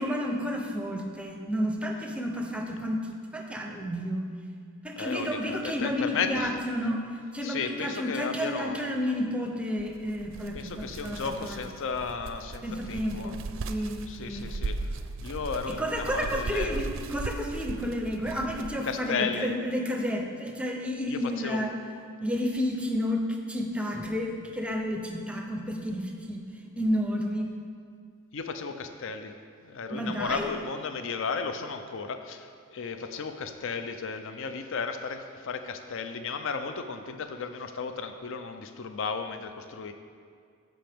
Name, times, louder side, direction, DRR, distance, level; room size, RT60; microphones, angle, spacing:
voice 1, 0.0-4.3 4.8-11.6 12.6-13.4 13.7-14.5 15.7-21.7 22.2-26.4 26.8-27.5 29.9-30.5, equal, 5° right, 2 dB, 0.6 m, -31 dB
voice 2, 5.0-6.6 7.4-9.0 10.5-13.3 14.1-14.9 15.2-16.8 18.8-19.5 21.1-21.6 28.3-29.3 29.6-39.9, left 5 dB, 60° left, 8 dB, 0.5 m, -34 dB
sound 1, 9.8-19.1, right 3 dB, 60° right, 0.4 m, -38 dB
13.5 x 5.2 x 3.5 m, 2.2 s
head